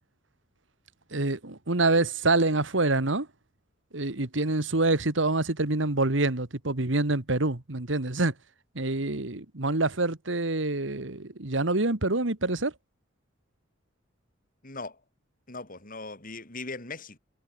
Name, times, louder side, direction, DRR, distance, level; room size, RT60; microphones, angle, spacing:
voice 1, 1.1-3.3 3.9-8.3 8.8-12.7, right 2 dB, 70° right, 1.9 m, -26 dB
voice 2, 14.6-15.0 15.5-17.2, left 3 dB, 45° left, 5.0 m, -39 dB
head